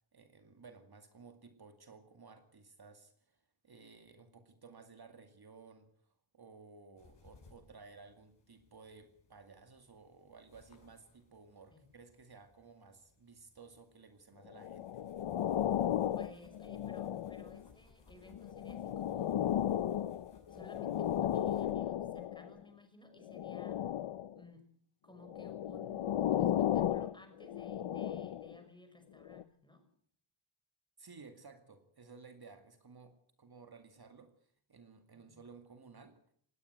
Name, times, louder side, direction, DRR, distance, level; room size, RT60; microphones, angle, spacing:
voice 1, 0.1-14.9 31.0-36.2, right 4 dB, 50° right, 7 dB, 2.3 m, -56 dB
sound 1, 7.0-21.7, left 3 dB, 55° left, 7.9 m, -65 dB
sound 2, 14.6-17.7 18.3-22.5 23.3-24.4 25.2-28.6 29.3-29.4, left 11 dB, 90° left, 0.8 m, -35 dB
voice 2, 16.1-19.5 20.5-23.8 24.4-24.7 25.0-29.8 35.1-35.4, left 1 dB, 10° left, 6 dB, 6.0 m, -58 dB
19.5 x 17.5 x 8.0 m, 0.63 s
wide cardioid pair, 100°, 49 cm